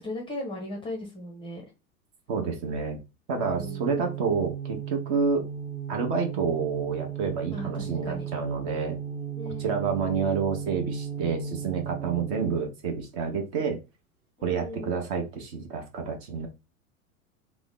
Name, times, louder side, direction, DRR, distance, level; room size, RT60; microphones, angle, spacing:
voice 1, 0.0-1.6 3.5-4.0 7.5-8.3 9.4-9.8 14.4-14.9, left 1 dB, 10° left, 1 dB, 0.6 m, -37 dB
voice 2, 2.3-3.0 3.3-5.4 5.9-9.0 9.6-13.8 14.4-16.5, right 5 dB, 40° right, 3 dB, 0.9 m, -29 dB
sound 1, 3.4-12.7, right 8 dB, 90° right, 0.9 m, -35 dB
3.0 x 2.0 x 3.9 m, 0.27 s
figure-of-eight pair, 90°, 43 cm